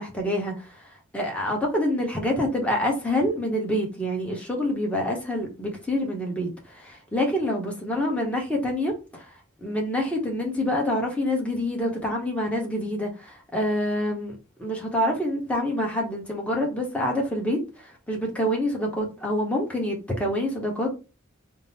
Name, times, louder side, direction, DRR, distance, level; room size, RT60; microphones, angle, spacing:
voice 1, 0.0-9.3 9.6-20.9, left 1 dB, 5° left, 1.0 m, -27 dB
3.7 x 2.1 x 4.1 m
head